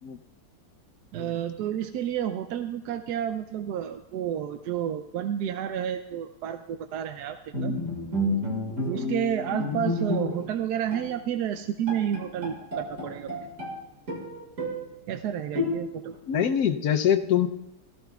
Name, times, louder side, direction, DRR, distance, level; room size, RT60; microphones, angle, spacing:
voice 1, 1.1-7.8 8.8-13.3 15.1-16.2, right 10 dB, 75° right, 8 dB, 1.1 m, -30 dB
Bowed string instrument, 7.5-10.6 10.9-11.1 11.6-11.7 11.9-13.8 14.1-14.9 15.5-16.1, left 1 dB, 50° right, 2.5 m, -30 dB
voice 2, 16.3-17.5, left 9 dB, 70° left, 7 dB, 1.2 m, -24 dB
17.5 x 14.5 x 2.4 m, 0.90 s
omnidirectional pair, 1.8 m